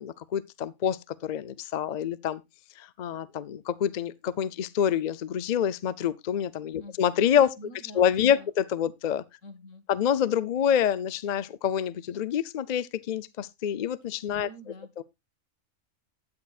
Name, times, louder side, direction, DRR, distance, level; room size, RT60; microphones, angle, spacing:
voice 1, 0.0-2.4 2.8-7.6 7.9-9.2 9.9-14.5 15.0-15.1, left 9 dB, 50° left, 0.6 m, -27 dB
voice 2, 7.6-8.5 9.4-9.9 14.3-14.9, equal, 90° left, 2.0 m, -47 dB
13.0 x 9.6 x 2.4 m
omnidirectional pair, 1.3 m